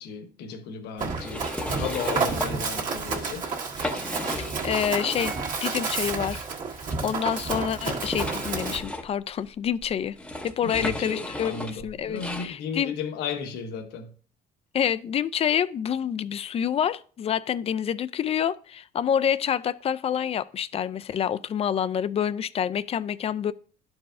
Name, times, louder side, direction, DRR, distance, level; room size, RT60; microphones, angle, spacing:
voice 1, 0.0-1.4 1.7-3.5 10.6-14.1, left 6 dB, 85° left, 1.0 m, -34 dB
Run, 1.0-8.8, right 4 dB, 50° right, 1.7 m, -30 dB
sound 1, 1.1-2.5 2.9-3.2 3.6-5.5 5.8-5.9 6.9-12.5, left 1 dB, 5° left, 0.7 m, -35 dB
voice 2, 4.4-5.3 5.6-6.4 7.0-10.2 10.4-12.9 14.7-23.5, left 9 dB, 35° left, 0.3 m, -27 dB
sound 2, 5.2-8.4 8.6-8.8, right 8 dB, 80° right, 0.8 m, -46 dB
11.5 x 4.7 x 2.5 m
cardioid pair, 110°, 17 cm